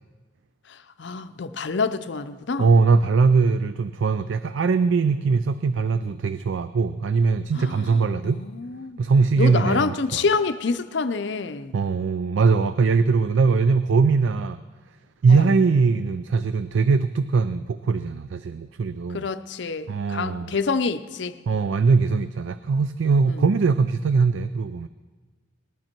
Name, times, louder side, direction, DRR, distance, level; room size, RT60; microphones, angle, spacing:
voice 1, 0.7-2.7 7.5-9.0 9.4-11.7 15.3-15.5 19.1-21.4 23.3-23.4, left 4 dB, 60° left, 11 dB, 0.6 m, -27 dB
voice 2, 2.6-8.4 9.0-10.2 11.7-14.6 15.2-19.3 19.9-20.5 21.5-24.9, right 4 dB, 70° right, 13 dB, 0.4 m, -21 dB
19.5 x 11.5 x 4.5 m, 1.4 s
head